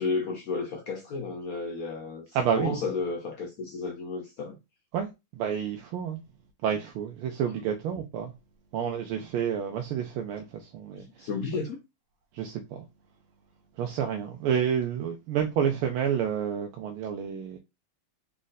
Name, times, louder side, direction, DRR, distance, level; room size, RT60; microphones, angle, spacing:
voice 1, 0.0-4.6 10.9-11.8, left 4 dB, 80° left, 0.8 m, -33 dB
voice 2, 2.3-2.8 4.9-6.2 6.6-8.3 8.7-11.3 12.3-12.8 13.8-17.6, right 8 dB, 85° right, 1.5 m, -29 dB
4.1 x 2.5 x 4.0 m
omnidirectional pair, 2.3 m